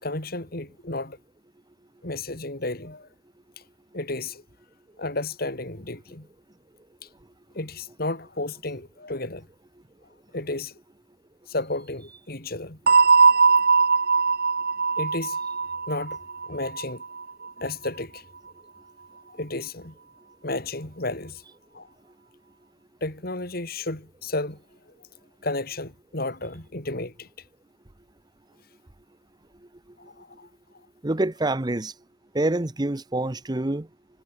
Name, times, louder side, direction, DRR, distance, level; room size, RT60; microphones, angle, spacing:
voice 1, 0.0-1.2 2.0-3.1 3.9-4.4 5.0-6.3 7.0-7.1 7.5-9.5 10.3-10.7 11.5-12.8 13.3-13.4 15.0-15.4 15.9-16.2 16.4-17.0 17.6-18.2 19.3-19.9 20.4-21.4 21.7-21.9 23.0-24.6 25.0-25.1 25.4-27.3 30.0-30.5, left 2 dB, 55° left, 4.2 m, -32 dB
sound 1, 12.9-17.5, right 5 dB, 60° right, 2.0 m, -20 dB
voice 2, 31.0-31.9 32.3-33.9, right 2 dB, 25° right, 0.9 m, -26 dB
head